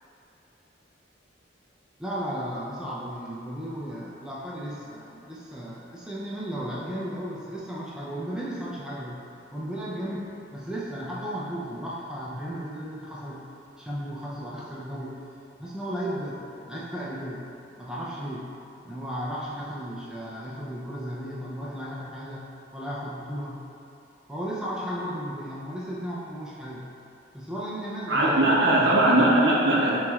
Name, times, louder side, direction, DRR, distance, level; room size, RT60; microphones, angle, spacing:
voice 1, 2.0-9.2 9.5-13.4 13.8-15.2 15.6-17.4 17.8-18.5 18.8-22.4 22.7-23.6 24.3-26.9 27.3-28.6, equal, 5° right, -7 dB, 0.4 m, -35 dB
voice 2, 28.1-29.9, right 1 dB, 70° right, -4 dB, 0.7 m, -20 dB
5.9 x 3.1 x 2.4 m, 2.7 s
head